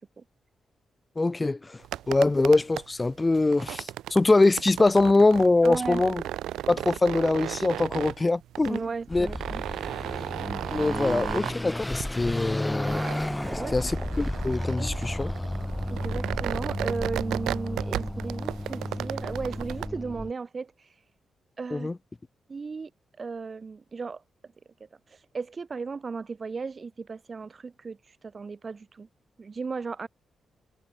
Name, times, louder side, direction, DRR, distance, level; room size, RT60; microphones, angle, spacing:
voice 1, 1.1-1.8 2.1-6.2 6.7-8.8 9.1-9.3 10.7-13.0 13.7-15.3 21.7-22.0, left 2 dB, 30° left, 5.0 m, -23 dB
sound 1, 1.8-19.9, right 13 dB, 80° right, 4.0 m, -35 dB
voice 2, 5.6-6.0 8.7-9.6 13.4-13.7 14.8-14.9 15.9-21.1 21.6-21.9 22.5-22.9 23.2-24.2 24.8-29.1 29.4-30.1, right 4 dB, 45° right, 3.3 m, -35 dB
Car passing by / Accelerating revving vroom, 9.1-20.3, left 1 dB, 10° left, 7.2 m, -32 dB
hypercardioid pair, 45°, 0 cm